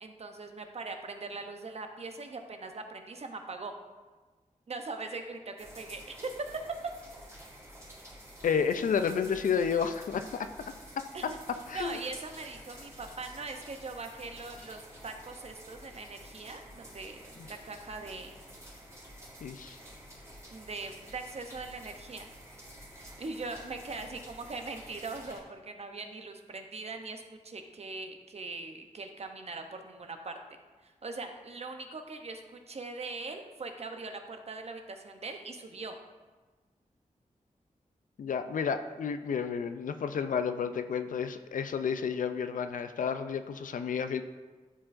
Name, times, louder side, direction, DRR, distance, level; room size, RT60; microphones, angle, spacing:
voice 1, 0.0-3.7 4.7-6.6 11.1-11.4 11.7-18.4 20.5-22.3 23.0-30.3 30.8-36.0, right 3 dB, 50° right, 5 dB, 0.7 m, -41 dB
sound 1, 5.6-25.4, equal, 20° right, 2.2 m, -50 dB
voice 2, 8.4-10.7 11.7-12.0 19.4-19.8 38.2-44.2, left 6 dB, 80° left, 9 dB, 0.4 m, -31 dB
11.0 x 4.7 x 2.5 m, 1.3 s
wide cardioid pair, 75°, 13 cm